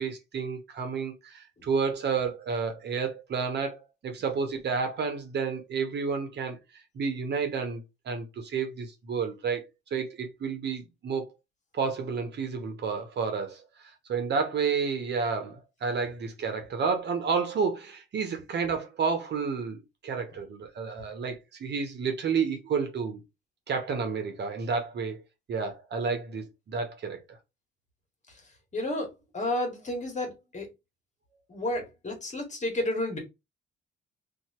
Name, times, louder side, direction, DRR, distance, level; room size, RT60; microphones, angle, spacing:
voice 1, 0.0-6.6 6.9-11.3 11.7-13.6 14.1-23.2 23.7-25.2 25.5-27.2, right 5 dB, 60° right, 1.2 m, -30 dB
voice 2, 28.7-29.1 29.3-30.7 31.5-33.2, left 1 dB, 35° left, 1.8 m, -31 dB
2.9 x 2.8 x 4.3 m
cardioid pair, 90°, 20 cm